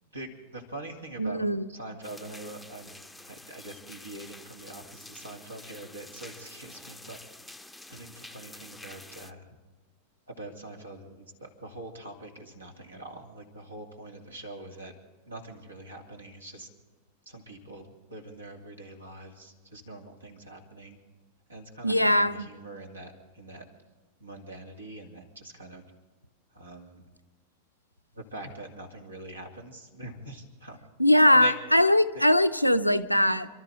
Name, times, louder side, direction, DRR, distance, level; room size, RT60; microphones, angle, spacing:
voice 1, 0.0-1.4 1.7-3.0 3.2-7.2 7.9-9.6 10.3-15.0 15.3-16.7 17.3-21.0 21.5-23.7 24.2-25.8 26.5-27.0 28.1-30.8 31.3-31.5 32.1-32.2, right 2 dB, 75° right, 3 dB, 2.5 m, -43 dB
voice 2, 1.2-1.7 21.8-22.5 31.0-33.5, left 1 dB, 90° left, 7 dB, 0.7 m, -21 dB
sound 1, 2.0-9.3, left 2 dB, ahead, 0.7 m, -48 dB
28.5 x 13.0 x 3.7 m, 1.3 s
figure-of-eight pair, 90°, 0 cm